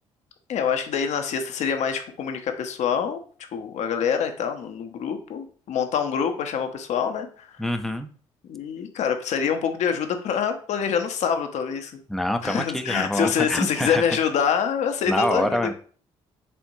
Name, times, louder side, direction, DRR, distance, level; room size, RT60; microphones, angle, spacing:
voice 1, 0.5-3.2 3.5-7.6 8.5-12.0 12.4-15.7, left 7 dB, 65° left, 6 dB, 0.7 m, -26 dB
voice 2, 7.6-8.1 12.1-14.0 15.1-15.7, left 1 dB, ahead, 7 dB, 0.5 m, -25 dB
4.4 x 3.5 x 2.6 m, 0.43 s
supercardioid pair, 60°, 13 cm